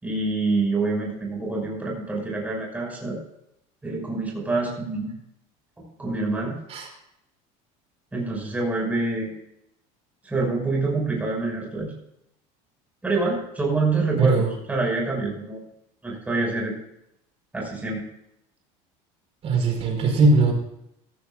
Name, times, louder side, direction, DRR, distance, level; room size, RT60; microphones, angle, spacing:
voice 1, 0.0-3.2 3.8-5.1 5.8-6.6 8.1-9.3 10.2-11.9 13.0-15.6 16.0-16.8 17.5-18.0, right 3 dB, 10° right, -2 dB, 5.8 m, -26 dB
voice 2, 14.2-14.5 19.4-20.5, right 3 dB, 40° right, 3 dB, 4.7 m, -20 dB
16.0 x 15.0 x 2.5 m, 0.79 s
cardioid pair, 140°, 16 cm